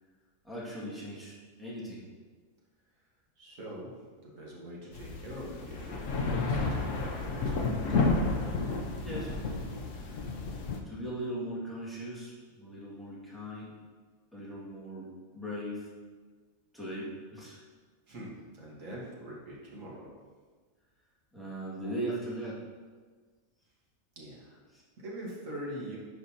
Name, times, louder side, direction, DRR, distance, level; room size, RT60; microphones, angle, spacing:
voice 1, 0.4-2.1 9.0-9.3 10.0-10.3 10.9-13.8 14.3-15.1 15.3-15.9 16.7-17.6 21.3-22.6 24.7-24.8, right 1 dB, ahead, -8 dB, 1.9 m, -39 dB
voice 2, 3.4-3.9 4.2-6.0 6.4-8.0 18.1-20.1 24.2-24.6 25.0-26.0, right 1 dB, 70° right, -4 dB, 1.9 m, -43 dB
sound 1, 4.9-10.8, left 3 dB, 70° left, 1.0 m, -31 dB
10.0 x 5.1 x 2.8 m, 1.5 s
omnidirectional pair, 1.4 m